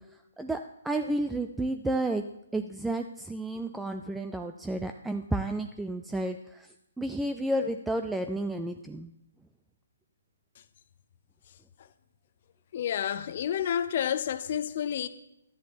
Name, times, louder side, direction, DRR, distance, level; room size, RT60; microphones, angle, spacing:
voice 1, 0.8-2.2 2.5-6.7 7.0-9.1, right 1 dB, 5° right, 0.4 m, -31 dB
voice 2, 12.7-15.1, left 9 dB, 40° left, 0.7 m, -29 dB
13.0 x 10.0 x 4.2 m
figure-of-eight pair, 130°, 0 cm